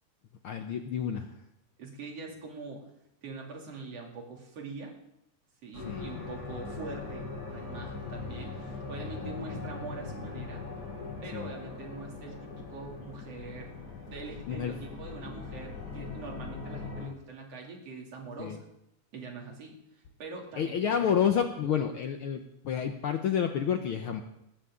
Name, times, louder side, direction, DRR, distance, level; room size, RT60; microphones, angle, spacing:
voice 1, 0.4-1.4 5.8-6.2 9.0-9.4 11.3-11.5 14.5-14.8 18.4-18.6 20.6-24.2, left 8 dB, 70° left, 6 dB, 1.3 m, -30 dB
voice 2, 1.8-2.9 3.2-5.0 5.6-10.6 11.2-13.7 14.0-18.7 19.1-21.3, right 3 dB, 55° right, 0 dB, 3.7 m, -43 dB
sound 1, 5.7-17.1, left 3 dB, 40° left, 5.9 m, -41 dB
19.5 x 13.5 x 3.7 m, 0.79 s
omnidirectional pair, 3.3 m